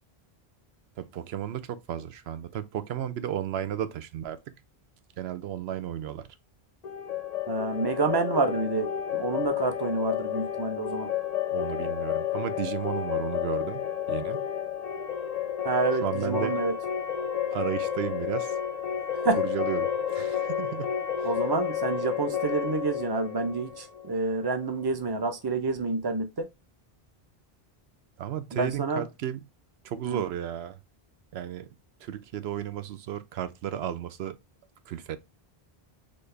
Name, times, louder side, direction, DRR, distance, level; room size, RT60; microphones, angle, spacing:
voice 1, 1.0-4.4 5.2-6.3 11.5-14.4 16.0-16.5 17.5-18.6 19.4-20.9 21.2-21.3 28.2-29.4 29.8-30.8 31.3-31.7 32.0-34.4 34.9-35.2, right 10 dB, 80° right, 0.9 m, -33 dB
sound 1, 6.8-24.6, left 9 dB, 55° left, 0.5 m, -31 dB
voice 2, 7.5-11.1 15.6-16.7 19.2-19.4 21.2-26.5 28.5-29.0 30.1-30.2, right 3 dB, 30° right, 0.6 m, -28 dB
4.2 x 3.3 x 3.2 m
omnidirectional pair, 1.0 m